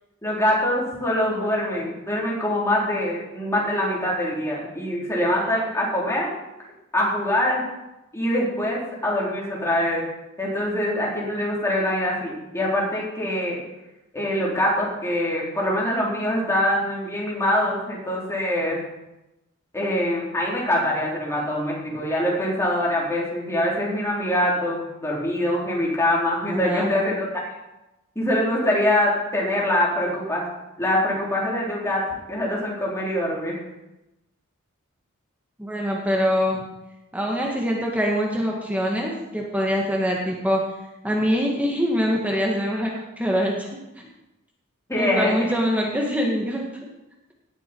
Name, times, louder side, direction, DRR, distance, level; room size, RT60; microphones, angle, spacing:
voice 1, 0.2-6.3 6.9-7.6 8.1-10.0 10.4-13.6 14.1-18.8 19.7-27.3 28.2-30.4 30.8-32.0 32.3-33.6 44.9-45.3, left 1 dB, 15° left, -4 dB, 4.1 m, -24 dB
voice 2, 26.5-27.0 35.6-36.6 37.1-40.6 41.0-43.7 44.0-44.1 45.0-46.6, equal, 5° right, -2 dB, 1.7 m, -24 dB
18.0 x 8.3 x 4.7 m, 0.97 s
head